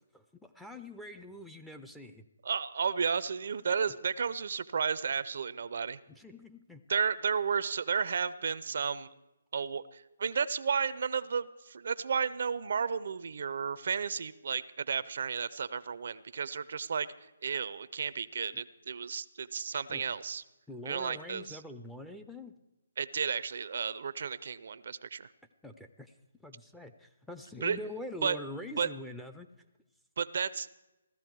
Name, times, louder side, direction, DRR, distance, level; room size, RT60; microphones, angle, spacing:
voice 1, 0.1-2.2 6.1-6.8 19.9-20.0 20.7-22.5 25.6-26.1 26.4-29.5, left 1 dB, ahead, 5 dB, 0.5 m, -44 dB
voice 2, 2.4-6.0 6.9-9.1 9.5-17.1 17.4-20.4 20.8-21.6 23.0-25.3 27.6-27.8 28.2-28.4 28.8-28.9 30.2-30.7, right 6 dB, 60° right, 16 dB, 0.5 m, -33 dB
16.0 x 13.0 x 4.6 m, 1.0 s
hypercardioid pair, 155°, 0 cm